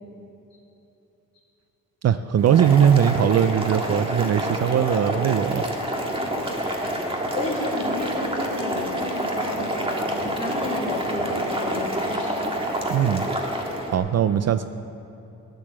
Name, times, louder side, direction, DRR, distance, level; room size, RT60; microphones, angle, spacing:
voice 1, 2.0-5.6 12.9-13.2 13.9-14.7, right 9 dB, 55° right, 11 dB, 0.4 m, -20 dB
Boiling, 2.4-13.9, equal, 15° right, 1.7 m, -27 dB
voice 2, 6.8-12.4 14.2-14.6, left 2 dB, 20° left, -10 dB, 3.5 m, -33 dB
13.5 x 10.5 x 7.4 m, 2.9 s
wide cardioid pair, 130°, 31 cm